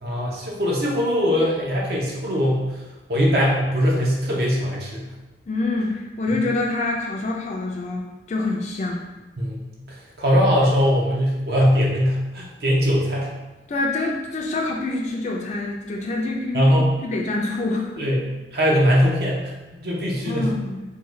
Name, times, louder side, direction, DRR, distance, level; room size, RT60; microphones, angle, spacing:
voice 1, 0.0-2.8 3.1-5.1 9.4-13.3 16.5-16.9 18.0-20.5, equal, 60° right, -3 dB, 0.6 m, -21 dB
voice 2, 5.5-9.0 13.7-18.1 20.3-20.8, left 2 dB, 40° left, 0 dB, 0.3 m, -26 dB
3.6 x 2.2 x 3.0 m, 1.1 s
head